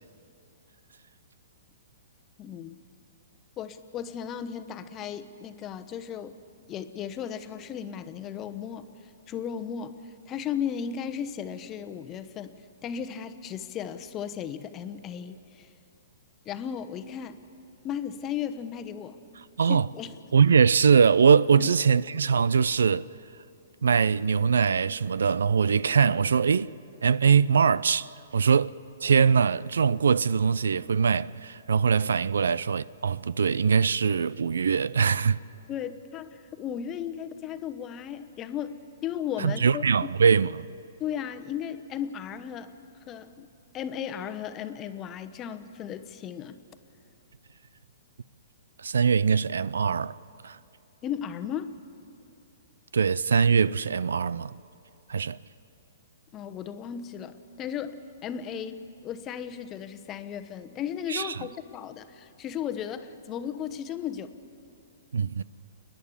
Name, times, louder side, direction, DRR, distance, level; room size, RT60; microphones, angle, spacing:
voice 1, 2.4-2.8 3.6-6.3 6.7-8.9 9.3-9.9 10.3-12.5 12.8-15.7 16.4-17.4 17.8-19.2 19.7-20.1 21.6-21.7 35.7-39.8 41.0-42.7 43.1-46.6 51.0-51.8 56.3-64.3, left 8 dB, 25° left, 1.0 m, -35 dB
voice 2, 20.3-23.1 23.8-26.7 27.0-35.4 39.4-40.7 48.8-50.2 50.4-50.6 52.9-54.6 55.1-55.4 61.1-61.5 65.1-65.4, right 6 dB, 85° right, 0.4 m, -22 dB
29.0 x 10.5 x 9.9 m
hypercardioid pair, 135°, 0 cm